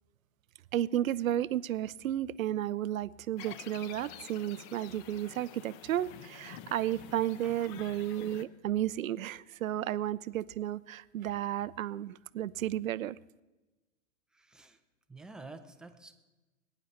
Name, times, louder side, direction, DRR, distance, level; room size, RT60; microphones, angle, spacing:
voice 1, 0.7-13.2, right 12 dB, 80° right, 19 dB, 0.6 m, -33 dB
sound 1, 3.4-8.4, left 10 dB, 35° left, 0.8 m, -49 dB
voice 2, 14.3-14.8 15.1-16.2, right 3 dB, ahead, 6 dB, 0.6 m, -49 dB
21.0 x 10.0 x 4.3 m, 1.1 s
hypercardioid pair, 125°, 40 cm